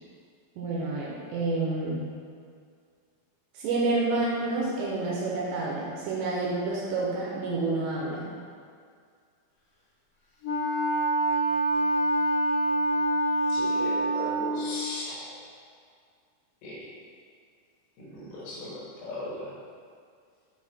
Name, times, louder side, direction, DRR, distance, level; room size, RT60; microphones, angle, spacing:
voice 1, 0.6-2.1 3.5-8.3, right 3 dB, 80° right, -5 dB, 3.0 m, -29 dB
Wind instrument woodwind instrument, 10.4-14.7, right 1 dB, 70° left, 1.6 m, -26 dB
voice 2, 13.5-15.3 16.6-16.8 18.1-18.7 19.0-19.5, left 1 dB, 90° left, -7 dB, 4.1 m, -37 dB
9.5 x 3.5 x 4.2 m, 2.2 s
omnidirectional pair, 5.3 m